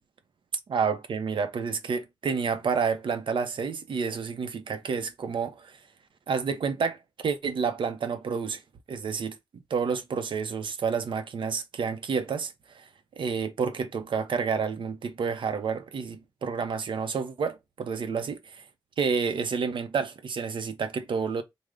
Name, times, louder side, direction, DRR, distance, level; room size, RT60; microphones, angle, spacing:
voice 1, 0.7-5.8 6.3-8.6 8.9-12.9 13.2-18.6 19.0-21.4, right 5 dB, 75° right, 0.5 m, -29 dB
3.3 x 2.0 x 3.6 m
wide cardioid pair, 175°, 9 cm